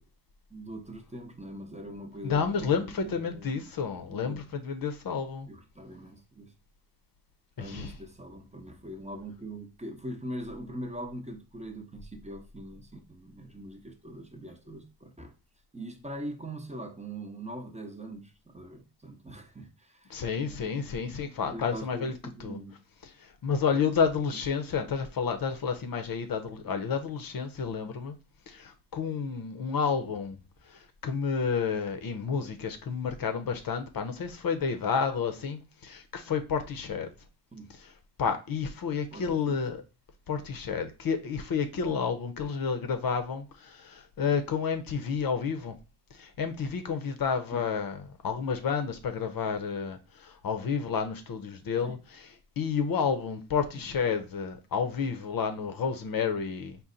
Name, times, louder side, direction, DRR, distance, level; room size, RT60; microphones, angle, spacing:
voice 1, 0.5-3.6 3.9-4.4 5.5-6.5 7.6-15.3 15.7-21.1 21.5-22.8 37.5-37.7 39.1-39.6 47.5-47.6 51.8-52.0 53.7-53.8, right 1 dB, 15° right, 0.8 m, -42 dB
voice 2, 2.2-5.5 7.6-7.9 20.1-22.1 22.4-22.6 23.0-28.2 28.5-30.4 30.7-37.1 37.8-37.9 38.2-39.8 40.3-45.8 46.1-56.8, left 6 dB, 50° left, 0.7 m, -30 dB
4.2 x 2.2 x 3.8 m
cardioid pair, 70°, 44 cm